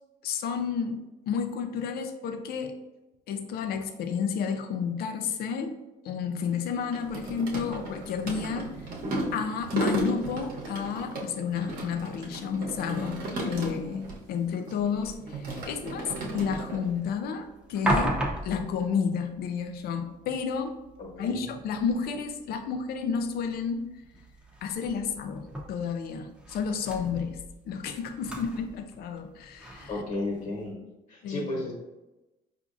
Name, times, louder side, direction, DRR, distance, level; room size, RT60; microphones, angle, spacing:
voice 1, 0.2-2.7 3.3-5.7 6.0-8.7 9.3-20.7 21.2-23.8 24.6-29.9 31.2-31.7, left 6 dB, 65° left, 6 dB, 0.5 m, -31 dB
sound 1, 6.4-14.2 14.5-16.8, right 2 dB, 55° right, 0.9 m, -35 dB
sound 2, 15.4-30.7, right 1 dB, 5° right, 0.7 m, -38 dB
voice 2, 21.0-21.4 29.9-30.8 31.1-31.7, left 2 dB, 50° left, -2 dB, 1.2 m, -33 dB
4.6 x 2.5 x 2.5 m, 1.0 s
cardioid pair, 110°, 17 cm